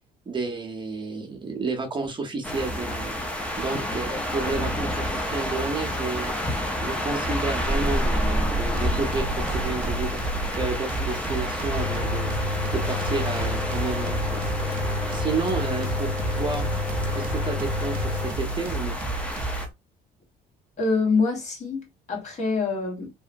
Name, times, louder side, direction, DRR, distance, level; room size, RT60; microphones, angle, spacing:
voice 1, 0.3-6.3 6.8-10.2 10.6-16.7 17.1-19.0, right 3 dB, 30° right, 0.8 m, -31 dB
sound 1, 2.4-19.7, equal, 5° left, 0.6 m, -29 dB
sound 2, 8.4-19.7, right 3 dB, 60° right, 0.7 m, -32 dB
Mechanical fan, 11.7-18.3, left 4 dB, 70° left, 1.8 m, -30 dB
voice 2, 20.8-23.1, left 4 dB, 45° left, 1.4 m, -25 dB
2.9 x 2.1 x 2.5 m
cardioid pair, 110°, 17 cm